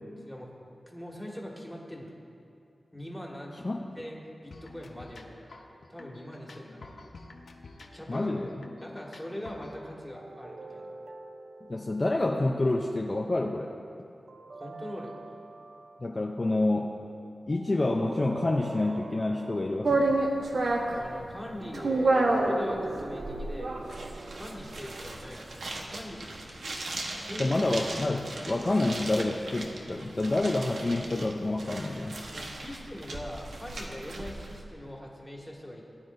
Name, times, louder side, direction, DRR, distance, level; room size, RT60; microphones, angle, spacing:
voice 1, 0.9-2.2 2.9-5.5 5.9-6.9 7.9-8.5 8.8-10.9 14.5-15.3 20.9-23.8 24.3-25.5 25.9-26.4 27.1-27.6 32.3-35.8, equal, 5° left, -2 dB, 1.8 m, -42 dB
sound 1, 4.5-9.8, left 3 dB, 75° left, 0.8 m, -49 dB
voice 2, 8.1-8.5 11.6-13.7 16.0-17.0 17.5-20.2 27.4-32.2, left 2 dB, 35° left, 0 dB, 0.6 m, -28 dB
sound 2, 10.1-12.6 14.3-16.1 17.5-20.2 21.6-26.1, right 3 dB, 55° right, 0.6 m, -44 dB
sound 3, 19.8-34.6, right 2 dB, 85° right, 1.2 m, -31 dB
19.5 x 9.7 x 2.6 m, 2.7 s
wide cardioid pair, 95°, 0 cm